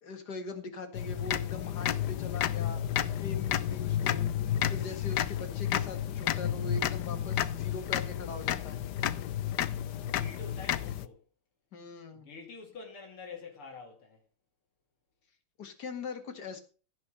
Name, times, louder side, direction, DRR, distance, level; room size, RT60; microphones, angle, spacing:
voice 1, 0.0-4.3 4.7-8.8 11.7-12.3 15.6-16.6, left 3 dB, 50° left, 2.3 m, -41 dB
sound 1, 0.9-11.1, left 11 dB, 65° left, 1.1 m, -31 dB
voice 2, 9.4-11.2 12.1-14.2, left 4 dB, 90° left, 3.7 m, -47 dB
16.0 x 6.1 x 6.3 m
omnidirectional pair, 2.3 m